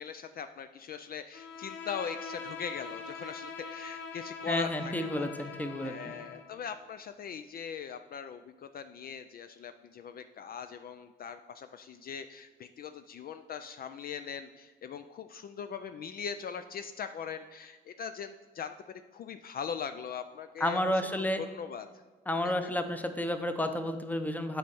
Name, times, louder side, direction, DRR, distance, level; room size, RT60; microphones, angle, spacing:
voice 1, 0.0-21.1 21.4-22.0 22.4-22.7, left 7 dB, 50° left, 9 dB, 0.4 m, -41 dB
Bowed string instrument, 1.3-6.5, left 4 dB, 70° left, 0.8 m, -43 dB
voice 2, 4.5-6.1 20.6-21.4 22.3-24.6, left 1 dB, 10° left, 8 dB, 0.7 m, -31 dB
8.3 x 4.5 x 5.3 m, 1.4 s
cardioid pair, 90°, 20 cm